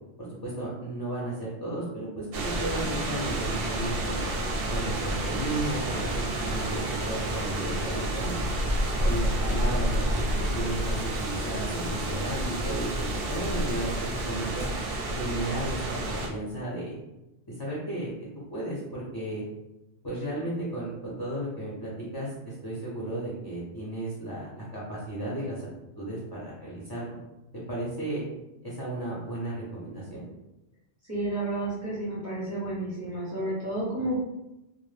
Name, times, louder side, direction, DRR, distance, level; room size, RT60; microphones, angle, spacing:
voice 1, 0.2-2.3 2.6-4.2 4.7-8.4 9.0-10.1 10.4-14.7 15.2-16.9 17.5-18.1 18.5-19.4 20.0-25.6 26.0-27.2 27.7-28.2 28.6-30.2, right 1 dB, 35° left, -7 dB, 0.4 m, -34 dB
sound 1, 2.3-16.3, right 1 dB, 65° right, 0.7 m, -29 dB
voice 2, 31.0-34.2, right 1 dB, 20° right, -8 dB, 0.5 m, -31 dB
2.0 x 2.0 x 3.2 m, 0.95 s
omnidirectional pair, 1.1 m